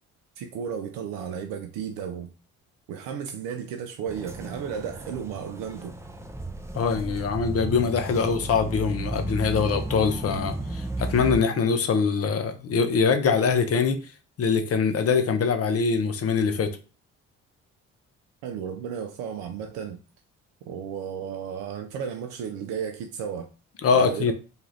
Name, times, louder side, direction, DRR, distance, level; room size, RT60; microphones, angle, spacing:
voice 1, 0.4-2.3 2.9-5.9 18.4-20.0 20.7-23.5 23.9-24.3, right 7 dB, 65° right, 0.5 m, -34 dB
sound 1, 4.1-11.4, right 2 dB, 10° right, 0.5 m, -34 dB
voice 2, 6.7-14.0 14.4-16.7 23.8-24.3, left 5 dB, 40° left, 0.6 m, -23 dB
2.7 x 2.3 x 3.1 m
hypercardioid pair, 45°, 37 cm